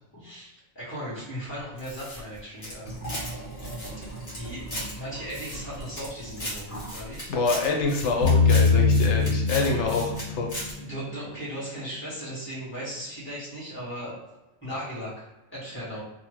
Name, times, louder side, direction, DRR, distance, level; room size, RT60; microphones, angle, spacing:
voice 1, 0.1-3.0 4.3-6.6 6.9-7.3 9.5-9.8 10.8-14.2 14.6-16.0, equal, 10° left, -10 dB, 1.5 m, -37 dB
sound 1, 1.8-3.3 3.6-4.9 5.3-6.1 6.3-10.2 10.5-10.7, left 1 dB, 40° left, 1.3 m, -37 dB
Liquid, 2.8-7.1 7.4-7.5, right 1 dB, 60° left, 1.5 m, -39 dB
voice 2, 7.3-10.5, left 3 dB, 85° left, 0 dB, 0.9 m, -26 dB
sound 2, 8.2-11.9, left 4 dB, 35° right, 0.6 m, -23 dB
2.8 x 2.1 x 3.1 m, 1.0 s
omnidirectional pair, 1.2 m